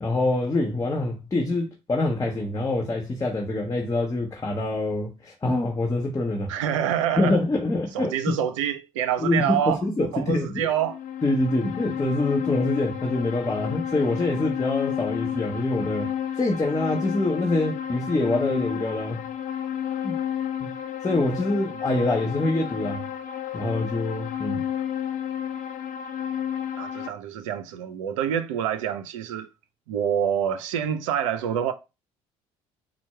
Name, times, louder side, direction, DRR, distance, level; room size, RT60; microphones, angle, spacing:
voice 1, 0.0-6.5 7.2-8.4 9.2-10.7 11.2-16.1 16.4-19.2 20.0-20.2 20.6-20.7 21.0-23.0 23.5-24.6, left 2 dB, 20° left, 0.9 m, -25 dB
voice 2, 6.5-7.4 7.9-11.0 26.8-29.5 29.9-31.7, right 9 dB, 75° right, 0.4 m, -26 dB
sound 1, 10.8-27.1, left 9 dB, 50° left, 0.5 m, -31 dB
4.4 x 2.1 x 4.3 m
hypercardioid pair, 55°, 16 cm